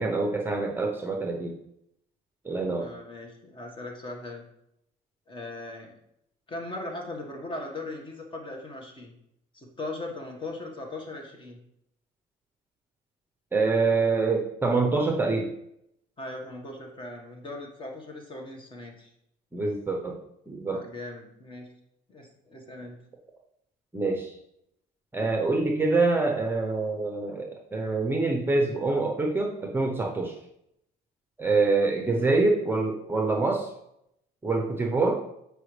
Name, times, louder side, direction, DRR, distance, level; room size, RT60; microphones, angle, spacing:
voice 1, 0.0-1.5 2.4-2.9 13.5-15.5 19.5-20.2 20.5-20.8 23.9-24.3 25.1-30.3 31.4-33.7 34.4-35.2, right 3 dB, 10° right, 1 dB, 0.8 m, -25 dB
voice 2, 2.8-4.4 5.3-5.9 6.5-9.1 9.5-11.6 16.2-19.1 20.6-21.7 22.1-23.0 32.0-32.4, left 2 dB, 30° left, 1 dB, 1.6 m, -39 dB
7.6 x 5.0 x 3.3 m, 0.78 s
cardioid pair, 110°, 17 cm